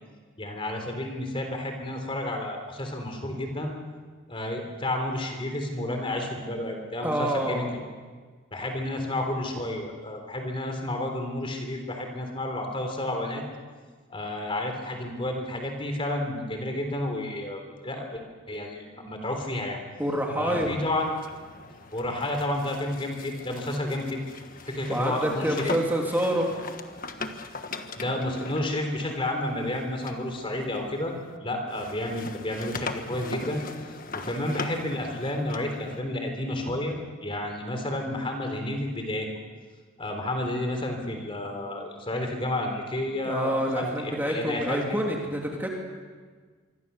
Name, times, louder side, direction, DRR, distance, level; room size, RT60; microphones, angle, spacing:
voice 1, 0.4-3.7 4.3-7.7 8.5-13.4 14.1-18.2 18.5-19.8 20.3-21.1 21.9-24.2 24.5-25.7 28.0-31.1 31.4-33.6 34.1-39.3 40.0-44.8, left 1 dB, 25° left, 4 dB, 3.5 m, -31 dB
voice 2, 7.0-7.7 20.0-20.7 24.9-26.5 43.2-45.7, equal, 10° right, -1 dB, 3.0 m, -27 dB
sound 1, 20.8-31.4 31.7-36.0, left 3 dB, 40° left, 1.5 m, -40 dB
25.5 x 24.5 x 7.0 m, 1.5 s
head